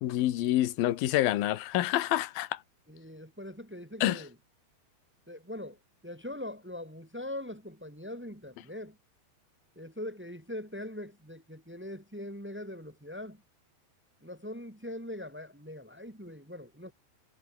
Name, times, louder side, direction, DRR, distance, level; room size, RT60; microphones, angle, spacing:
voice 1, 0.0-2.6 4.0-4.2, left 14 dB, 65° left, 2.8 m, -27 dB
voice 2, 2.9-4.3 5.3-5.8 6.0-9.0 9.7-13.4 14.2-16.9, left 1 dB, 10° right, 0.6 m, -42 dB
omnidirectional pair, 5.2 m